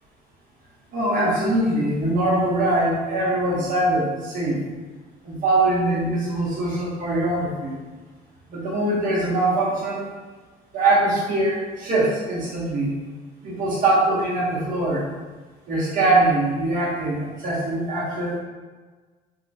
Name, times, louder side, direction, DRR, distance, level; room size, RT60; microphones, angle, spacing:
voice 1, 0.9-4.6 5.2-7.8 8.5-10.0 10.7-12.9 13.4-15.0 15.7-18.4, right 2 dB, 55° right, -6 dB, 1.0 m, -22 dB
3.0 x 2.9 x 2.7 m, 1.4 s
cardioid pair, 110°, 17 cm